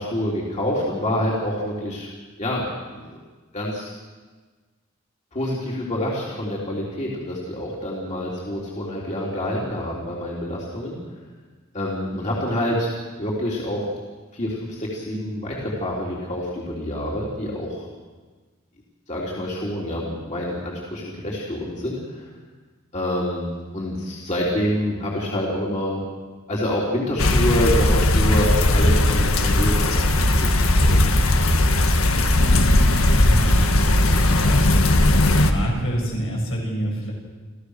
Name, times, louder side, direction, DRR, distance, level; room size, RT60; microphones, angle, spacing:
voice 1, 0.0-2.1 2.4-2.7 2.9-3.2 3.5-4.0 5.3-11.0 11.7-12.9 13.2-13.9 14.3-17.9 19.1-22.3 22.9-26.0 26.5-31.0, equal, 35° left, -4 dB, 3.7 m, -27 dB
sound 1, 27.2-35.5, left 1 dB, 85° left, 1.6 m, -18 dB
voice 2, 33.2-34.8 35.4-37.1, equal, 70° left, -2 dB, 7.1 m, -27 dB
28.5 x 15.0 x 6.6 m, 1.4 s
head